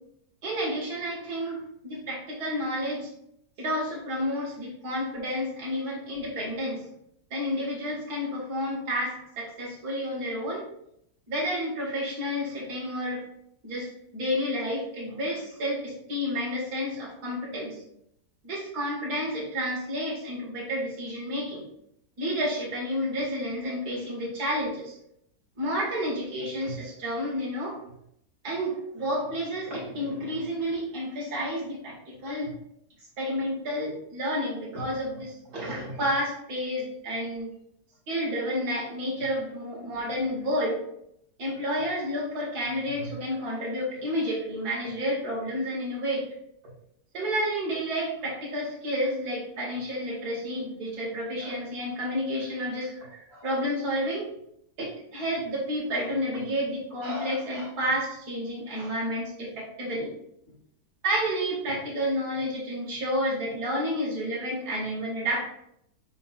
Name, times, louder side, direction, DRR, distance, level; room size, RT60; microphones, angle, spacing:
voice 1, 0.4-3.1 3.6-6.8 7.3-10.7 11.3-13.2 13.6-17.8 18.4-21.6 22.2-24.9 25.6-27.8 28.4-32.5 33.2-37.5 38.1-40.8 41.4-46.2 47.1-54.3 54.8-60.1 61.0-65.4, equal, 65° right, -4 dB, 2.4 m, -30 dB
5.3 x 4.5 x 4.1 m, 0.73 s
omnidirectional pair, 1.8 m